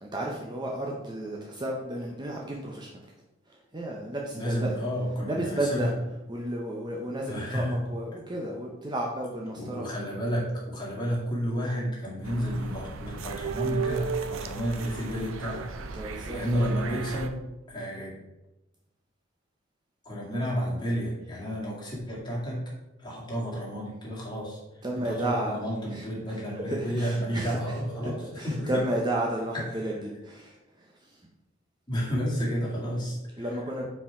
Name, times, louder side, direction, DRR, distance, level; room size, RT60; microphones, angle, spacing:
voice 1, 0.0-3.1 3.5-4.8 5.3-5.9 6.3-9.9 15.9-16.7 24.8-25.6 25.9-31.3 33.4-33.8, right 1 dB, 20° right, -1 dB, 0.6 m, -33 dB
voice 2, 4.3-5.9 7.3-7.7 9.5-15.7 16.3-17.4 17.7-18.1 20.0-22.6 23.0-28.7 31.9-33.5, equal, 20° left, -5 dB, 2.1 m, -31 dB
sound 1, 12.2-17.3, right 5 dB, 75° right, 0.5 m, -35 dB
5.6 x 4.8 x 4.7 m, 0.99 s
head